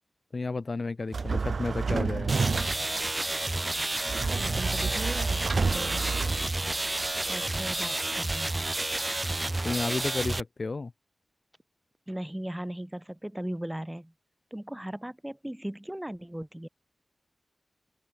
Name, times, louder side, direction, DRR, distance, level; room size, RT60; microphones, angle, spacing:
voice 1, 0.3-2.4 9.6-10.9, left 3 dB, 55° left, 0.8 m, -32 dB
sound 1, 1.1-3.0 4.1-6.9, right 4 dB, 70° right, 1.3 m, -30 dB
sound 2, 2.3-10.4, right 2 dB, 30° right, 4.1 m, -30 dB
voice 2, 4.4-6.6 7.3-8.7 12.1-14.1 14.5-16.7, right 1 dB, 10° right, 6.1 m, -38 dB
cardioid pair, 40°, 0 cm